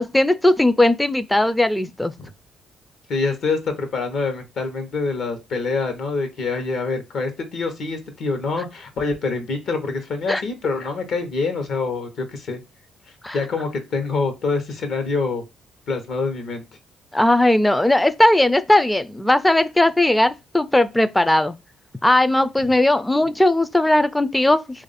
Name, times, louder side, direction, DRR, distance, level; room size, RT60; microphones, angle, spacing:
voice 1, 0.0-2.1 10.3-10.4 13.2-13.4 17.1-21.6 22.0-24.8, left 1 dB, 10° left, 0.4 m, -18 dB
voice 2, 3.1-12.6 13.3-15.4 15.9-16.6, left 4 dB, 70° left, 1.0 m, -25 dB
3.2 x 2.5 x 4.0 m
cardioid pair, 90°, 0 cm